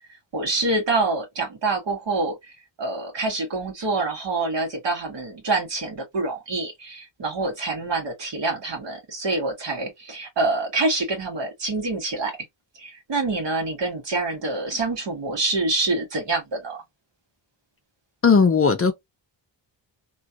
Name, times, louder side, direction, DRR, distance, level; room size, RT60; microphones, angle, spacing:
voice 1, 0.3-2.5 2.8-12.4 12.8-16.8, right 3 dB, 70° right, 1.6 m, -26 dB
voice 2, 18.2-18.9, left 5 dB, 30° left, 0.5 m, -17 dB
3.0 x 2.4 x 2.7 m
wide cardioid pair, 140°, 45 cm